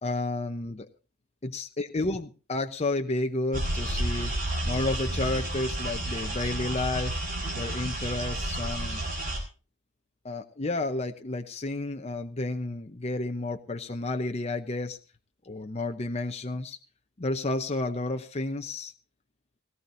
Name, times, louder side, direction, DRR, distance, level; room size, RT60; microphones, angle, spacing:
voice 1, 0.0-0.9 1.4-4.3 4.6-7.2 7.5-9.0 10.2-15.0 15.4-16.8 17.2-18.9, left 2 dB, 30° left, 5 dB, 0.8 m, -31 dB
sound 1, 3.5-9.4, right 1 dB, 40° right, 5.5 m, -31 dB
18.5 x 16.5 x 2.6 m, 0.34 s
head